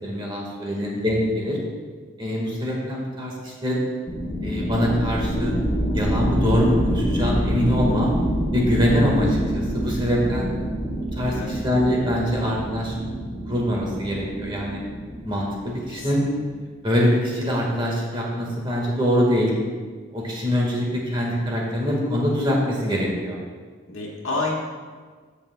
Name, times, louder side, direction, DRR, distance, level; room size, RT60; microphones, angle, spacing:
voice 1, 0.0-1.6 2.2-3.8 4.4-5.5 5.9-8.2 8.5-10.5 11.1-12.9 13.5-14.8 15.2-16.2 16.8-19.6 20.1-23.4, equal, 25° right, -3 dB, 1.6 m, -23 dB
sound 1, 4.1-16.3, equal, 35° left, 2.0 m, -26 dB
voice 2, 15.9-16.3 23.9-24.5, left 2 dB, 65° left, -3 dB, 1.5 m, -30 dB
15.0 x 5.7 x 2.2 m, 1.5 s
head